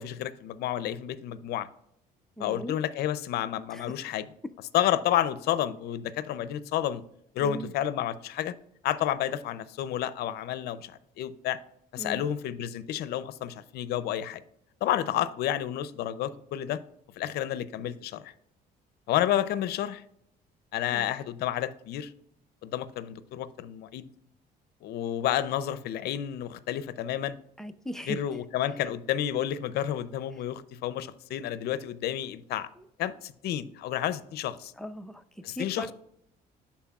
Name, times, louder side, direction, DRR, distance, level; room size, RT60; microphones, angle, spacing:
voice 1, 0.0-1.7 2.4-4.2 4.7-7.0 7.3-8.5 8.8-11.6 11.9-14.4 14.8-16.8 17.2-18.3 19.1-20.0 20.7-22.1 22.6-24.1 24.8-27.4 28.1-32.7 33.0-34.7 35.4-35.9, left 11 dB, 70° left, 0.5 m, -30 dB
voice 2, 2.4-2.8 3.7-3.9 7.4-7.7 12.0-12.3 20.9-21.1 27.6-28.2 32.8-32.9 34.8-35.9, equal, 5° left, 0.5 m, -39 dB
11.0 x 4.3 x 2.3 m
cardioid pair, 110°, 17 cm